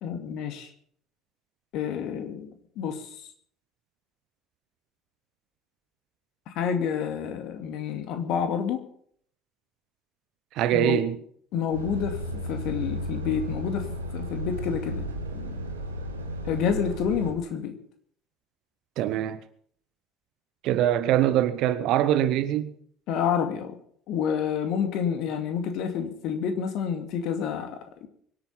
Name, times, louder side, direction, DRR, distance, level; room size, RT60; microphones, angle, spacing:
voice 1, 0.0-0.7 1.7-3.2 6.5-8.9 10.7-11.0 11.5-15.6 16.4-17.8 23.1-23.8 24.1-28.1, left 7 dB, 55° left, 2.4 m, -29 dB
voice 2, 10.5-11.2 19.0-19.4 20.6-22.7, right 11 dB, 55° right, 0.9 m, -23 dB
Truck, 11.7-17.3, equal, 80° right, 1.6 m, -33 dB
24.0 x 8.9 x 5.7 m
figure-of-eight pair, 55°, 0 cm